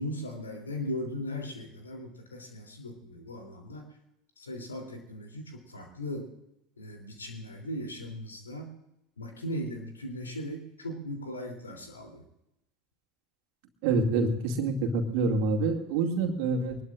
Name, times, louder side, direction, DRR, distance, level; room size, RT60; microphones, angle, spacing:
voice 1, 0.0-3.9 4.4-6.3 6.8-8.7 9.2-12.2, equal, 75° left, 3 dB, 3.2 m, -38 dB
voice 2, 13.8-16.8, right 3 dB, 55° right, 2 dB, 2.3 m, -27 dB
24.0 x 20.0 x 2.5 m, 0.85 s
figure-of-eight pair, 75°, 0 cm